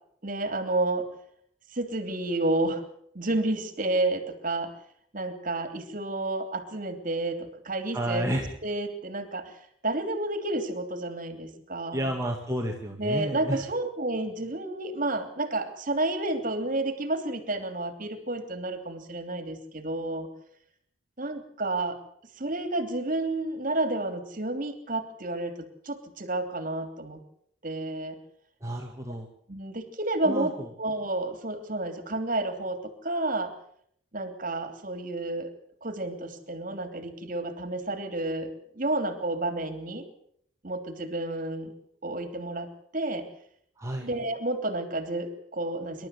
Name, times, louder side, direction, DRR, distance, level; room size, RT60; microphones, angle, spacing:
voice 1, 0.2-1.1 1.7-2.8 3.1-4.7 5.1-12.1 13.0-20.3 21.2-22.0 22.4-27.2 27.6-28.2 29.5-33.5 34.1-35.5 35.8-40.1 40.6-41.7 42.0-42.7 42.9-43.3 44.0-46.1, right 2 dB, 40° right, 9 dB, 3.0 m, -30 dB
voice 2, 7.9-8.5 11.9-13.6 28.6-29.3 30.2-30.7 43.8-44.1, right 1 dB, 15° right, 1 dB, 2.0 m, -31 dB
27.0 x 12.5 x 8.1 m, 0.67 s
head